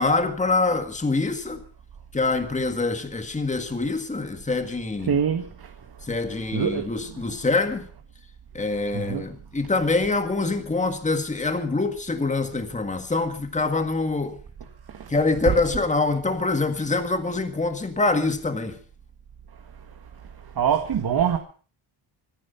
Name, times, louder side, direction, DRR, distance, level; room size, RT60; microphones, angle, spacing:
voice 1, 0.0-1.6 2.1-5.2 6.1-7.9 8.5-14.4 15.1-18.8, left 3 dB, 15° left, 1.8 m, -25 dB
voice 2, 5.1-5.7 6.5-7.2 8.9-9.3 14.9-15.1 15.4-15.6 20.6-21.4, right 8 dB, 55° right, 1.8 m, -24 dB
25.0 x 9.8 x 5.7 m
wide cardioid pair, 145°, 47 cm